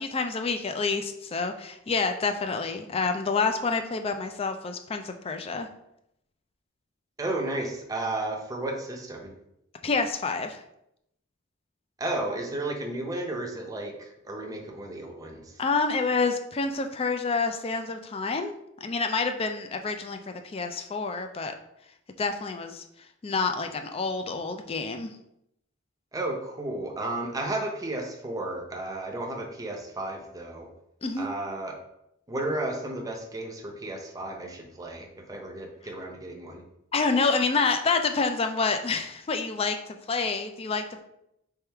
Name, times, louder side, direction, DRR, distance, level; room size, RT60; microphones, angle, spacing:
voice 1, 0.0-5.7 9.8-10.6 15.6-18.5 18.8-21.5 22.2-22.8 23.2-25.1 31.0-31.3 36.9-41.0, left 4 dB, 30° left, 7 dB, 0.4 m, -28 dB
voice 2, 7.2-9.3 12.0-15.5 26.1-30.7 31.2-31.8 32.3-36.6, right 2 dB, 15° right, 2 dB, 0.6 m, -33 dB
3.5 x 3.4 x 4.4 m, 0.80 s
head